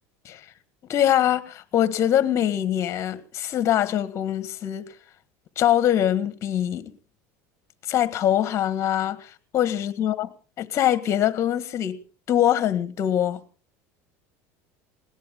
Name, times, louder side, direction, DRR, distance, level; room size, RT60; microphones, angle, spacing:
voice 1, 0.9-4.9 5.6-6.9 7.9-10.3 10.6-12.0 12.3-13.4, left 11 dB, 40° left, 1.5 m, -23 dB
20.5 x 18.0 x 3.6 m
supercardioid pair, 120°, 7 cm